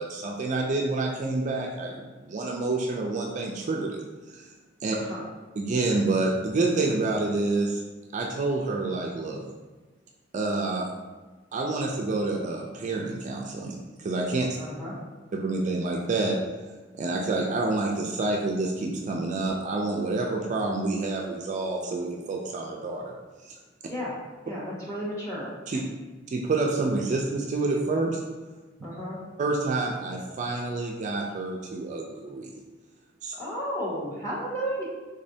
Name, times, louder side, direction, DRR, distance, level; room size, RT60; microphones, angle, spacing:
voice 1, 0.0-4.0 4.3-4.5 4.8-5.0 5.6-7.8 8.1-9.4 10.3-10.9 11.5-14.6 15.3-16.4 17.0-23.2 23.5-23.6 25.7-25.8 26.3-28.2 29.4-32.5 33.2-33.4, right 3 dB, 40° right, 0 dB, 0.3 m, -28 dB
voice 2, 14.6-14.9 23.9-24.1 24.4-25.5 28.8-29.2 33.3-34.8, equal, 15° left, -6 dB, 1.0 m, -33 dB
3.6 x 3.1 x 2.7 m, 1.3 s
head